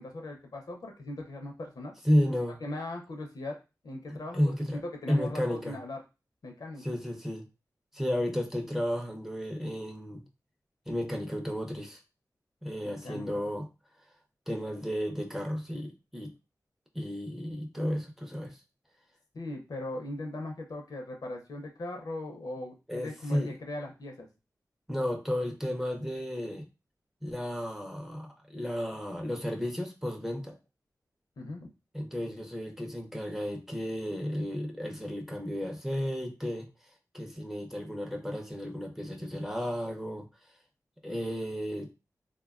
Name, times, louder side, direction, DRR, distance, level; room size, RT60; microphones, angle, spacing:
voice 1, 0.0-1.9 2.6-3.6 3.8-4.4 4.7-6.0 6.4-6.8 12.8-13.5 19.3-24.3 31.4-31.7, left 2 dB, 70° left, 2 dB, 0.6 m, -39 dB
voice 2, 2.0-2.6 4.1-4.8 5.1-5.8 6.8-7.4 7.9-10.2 10.9-12.0 12.6-13.7 14.5-16.3 16.9-18.6 22.9-23.5 24.9-26.7 27.2-30.6 31.9-36.7 37.1-40.3 41.0-41.9, equal, 5° right, 2 dB, 0.5 m, -32 dB
3.3 x 2.1 x 2.3 m, 0.28 s
wide cardioid pair, 100°, 7 cm